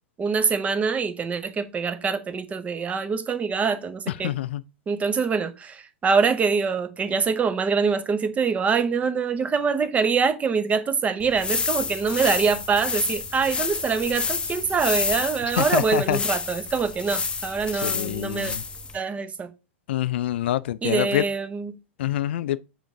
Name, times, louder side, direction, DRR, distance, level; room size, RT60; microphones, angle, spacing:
voice 1, 0.2-4.3 4.9-18.5 18.9-19.5 20.8-21.7, right 5 dB, 20° right, 1.0 m, -24 dB
voice 2, 4.2-4.6 15.6-16.2 17.8-18.6 19.9-21.2 22.0-22.6, left 12 dB, 65° left, 0.4 m, -25 dB
sound 1, 11.2-19.0, left 5 dB, 15° left, 0.8 m, -29 dB
6.6 x 5.0 x 3.8 m
figure-of-eight pair, 100°, 7 cm